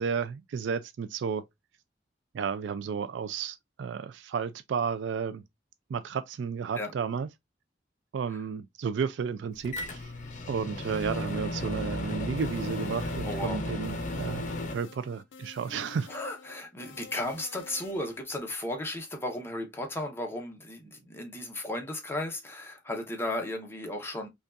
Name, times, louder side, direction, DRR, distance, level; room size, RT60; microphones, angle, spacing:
voice 1, 0.0-1.4 2.3-5.4 5.9-7.3 8.1-10.0 10.5-14.5 14.7-16.1, right 6 dB, 70° right, 0.3 m, -32 dB
Microwave oven, 9.6-14.7, left 1 dB, 45° left, 0.8 m, -34 dB
sound 1, 12.4-18.2, left 5 dB, 80° left, 0.5 m, -49 dB
voice 2, 13.2-13.6 16.1-24.3, left 1 dB, 15° left, 0.8 m, -35 dB
5.2 x 2.4 x 2.4 m
head